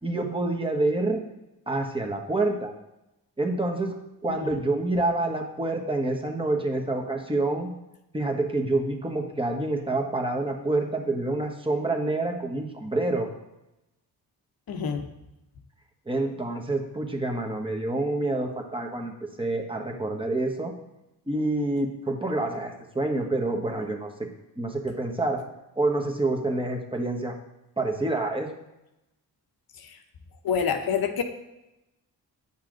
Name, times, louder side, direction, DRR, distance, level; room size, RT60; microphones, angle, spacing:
voice 1, 0.0-1.2 1.7-2.7 3.4-3.9 4.2-7.7 8.1-13.3 16.1-20.7 21.3-24.3 24.6-25.4 25.8-27.3 27.8-28.5, right 2 dB, 15° right, 2 dB, 1.3 m, -27 dB
voice 2, 14.7-15.1 29.8-30.0 30.4-31.2, left 7 dB, 65° left, 6 dB, 1.0 m, -27 dB
9.1 x 5.6 x 3.9 m, 0.92 s
cardioid pair, 80°, 39 cm